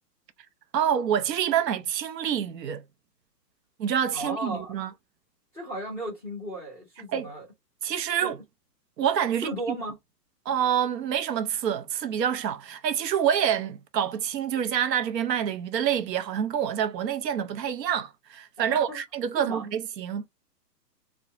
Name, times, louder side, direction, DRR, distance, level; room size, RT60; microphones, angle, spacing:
voice 1, 0.7-2.8 3.8-4.9 7.1-7.3 7.8-8.4 9.0-9.5 10.5-20.3, right 9 dB, 75° right, 0.6 m, -27 dB
voice 2, 4.1-4.8 5.5-7.4 8.1-8.3 9.4-10.0 18.7-19.0 19.4-19.6, right 1 dB, 10° right, 0.6 m, -35 dB
2.8 x 2.2 x 2.4 m
hypercardioid pair, 170°, 50 cm